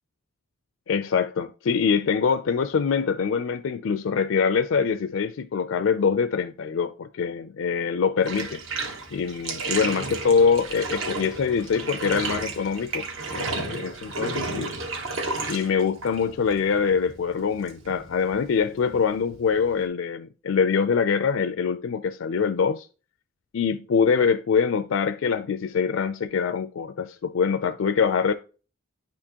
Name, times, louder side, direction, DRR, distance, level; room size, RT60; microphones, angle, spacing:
voice 1, 0.9-8.6 9.1-14.7 15.5-22.9 23.5-28.3, left 6 dB, 70° left, 0.4 m, -24 dB
Bathtub (filling or washing), 8.2-19.9, right 3 dB, 75° right, 1.4 m, -33 dB
10.5 x 4.4 x 2.9 m
head